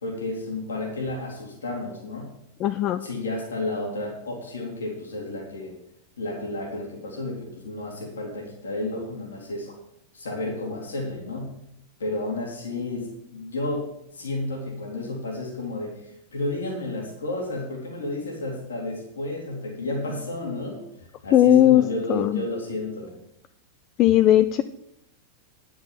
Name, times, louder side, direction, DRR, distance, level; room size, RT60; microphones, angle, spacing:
voice 1, 0.0-2.3 3.0-5.8 6.2-9.8 10.1-11.5 12.0-23.1, left 2 dB, 70° left, -1 dB, 2.5 m, -32 dB
voice 2, 2.6-3.0 21.3-21.8 22.1-22.4 24.0-24.6, left 12 dB, 35° left, 11 dB, 0.4 m, -17 dB
9.5 x 6.3 x 7.2 m, 0.78 s
figure-of-eight pair, 90°, 0 cm